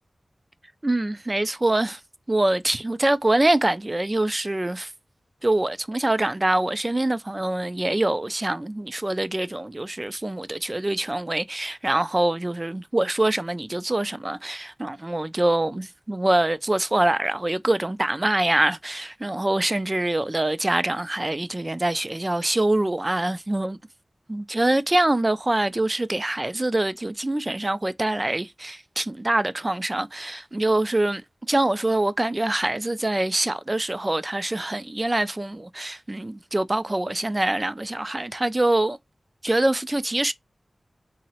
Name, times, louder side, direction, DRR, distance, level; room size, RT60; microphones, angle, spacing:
voice 1, 0.8-2.0 2.3-4.9 5.4-23.8 24.3-31.2 31.5-39.0 39.4-40.3, right 1 dB, 25° right, 0.3 m, -24 dB
3.7 x 2.0 x 2.8 m
wide cardioid pair, 95°, 0 cm